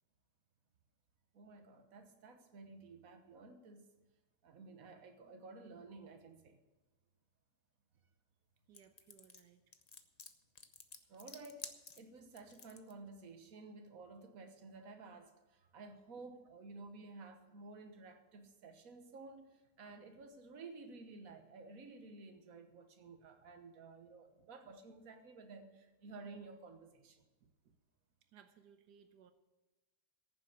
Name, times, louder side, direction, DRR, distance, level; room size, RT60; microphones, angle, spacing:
voice 1, 1.3-3.9 4.4-6.6 11.1-11.7 12.0-27.3, right 3 dB, 60° right, 6 dB, 1.6 m, -53 dB
sound 1, 8.7-12.9, left 5 dB, 35° left, 0.6 m, -52 dB
voice 2, 8.7-9.6 27.4-27.7 28.3-29.3, right 8 dB, 90° right, 8 dB, 1.4 m, -63 dB
15.0 x 7.4 x 7.9 m, 1.1 s
omnidirectional pair, 1.7 m